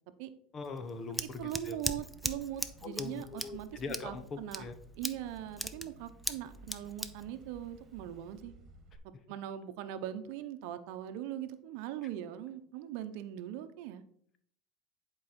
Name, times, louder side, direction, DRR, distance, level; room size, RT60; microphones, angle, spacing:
voice 1, 0.5-1.8 2.8-4.7, left 4 dB, 35° left, 9 dB, 1.1 m, -41 dB
Scissors, 0.6-8.4, equal, ahead, 0.6 m, -40 dB
voice 2, 1.4-4.6 5.0-8.5 9.3-14.0, right 11 dB, 70° right, 10 dB, 0.8 m, -41 dB
sound 1, 2.1-9.0, right 2 dB, 40° right, 1.7 m, -56 dB
10.5 x 4.8 x 4.3 m, 0.63 s
supercardioid pair, 115°, 0 cm